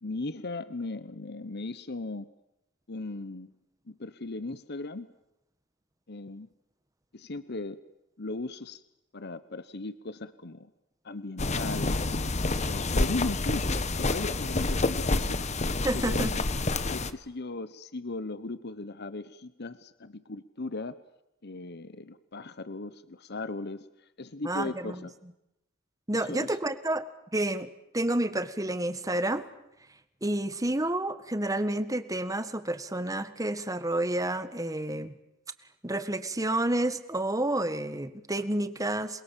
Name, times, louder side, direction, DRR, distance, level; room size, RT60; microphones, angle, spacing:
voice 1, 0.0-2.3 2.9-3.5 3.9-5.1 6.1-6.5 7.1-7.8 8.2-8.8 9.1-10.7 11.0-12.2 12.7-15.4 15.9-16.4 16.9-21.0 21.4-23.9 24.2-25.1 26.1-26.6, left 2 dB, 55° left, 14 dB, 1.1 m, -37 dB
sound 1, 11.4-17.1, left 2 dB, 35° left, 1.2 m, -28 dB
voice 2, 15.8-16.4 24.4-25.0 26.1-27.0 27.3-29.5 30.2-35.1 35.8-39.2, right 1 dB, 15° right, 11 dB, 1.6 m, -30 dB
28.0 x 22.0 x 7.4 m, 0.85 s
head